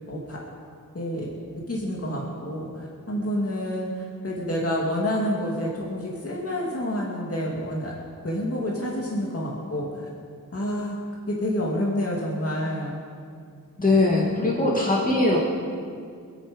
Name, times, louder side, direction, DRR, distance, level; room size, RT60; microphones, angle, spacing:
voice 1, 0.1-0.4 0.9-1.3 1.7-7.9 8.2-10.1 10.5-11.0 11.3-13.0, equal, 40° left, -4 dB, 2.5 m, -28 dB
voice 2, 13.8-15.4, left 2 dB, 25° left, -3 dB, 2.3 m, -21 dB
25.5 x 8.8 x 5.3 m, 2.2 s
wide cardioid pair, 90°, 34 cm